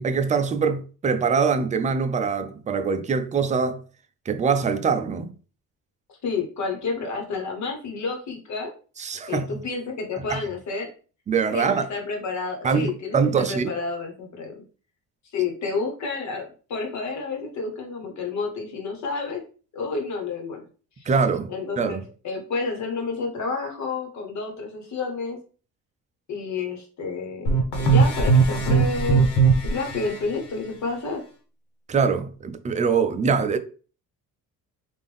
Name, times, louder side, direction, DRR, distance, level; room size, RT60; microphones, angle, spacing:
voice 1, 0.0-3.8 4.3-5.3 9.0-9.6 10.3-10.4 11.3-11.9 12.6-13.7 21.1-22.0 31.9-33.6, right 5 dB, 20° right, 0.4 m, -23 dB
voice 2, 6.2-8.7 9.3-10.9 11.5-14.6 15.3-19.4 19.7-20.6 21.0-21.1 21.5-25.4 26.3-29.3 29.6-31.2, left 4 dB, 55° left, 1.3 m, -30 dB
sound 1, 27.5-30.2, right 4 dB, 85° left, 1.2 m, -19 dB
3.6 x 2.5 x 3.4 m
cardioid pair, 120°, 34 cm